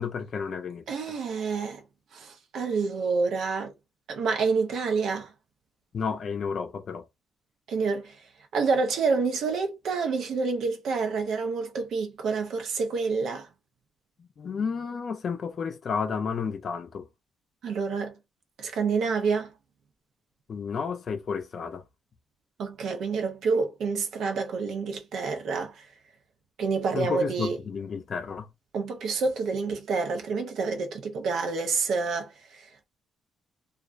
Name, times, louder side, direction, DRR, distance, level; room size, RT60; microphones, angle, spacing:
voice 1, 0.0-0.8 5.9-7.0 14.2-17.1 20.5-21.8 26.9-28.5, left 6 dB, 50° left, 0.5 m, -31 dB
voice 2, 0.9-1.8 2.1-3.7 4.1-5.3 7.7-8.2 8.5-13.5 17.6-18.1 18.6-19.5 22.6-25.7 26.6-27.6 28.7-32.9, right 4 dB, 70° right, 0.6 m, -28 dB
2.4 x 2.1 x 2.4 m
cardioid pair, 90°, 0 cm